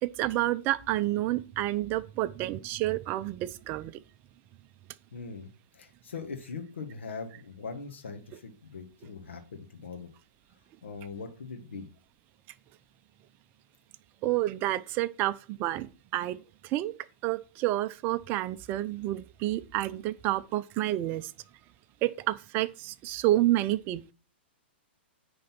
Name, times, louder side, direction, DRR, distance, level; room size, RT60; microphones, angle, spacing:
voice 1, 0.0-4.0 14.2-16.9 17.2-21.3 22.0-24.1, right 15 dB, 35° right, 0.6 m, -29 dB
voice 2, 5.1-10.1 10.8-11.9, left 4 dB, 85° left, 1.6 m, -41 dB
9.6 x 3.9 x 5.9 m
hypercardioid pair, 130°, 6 cm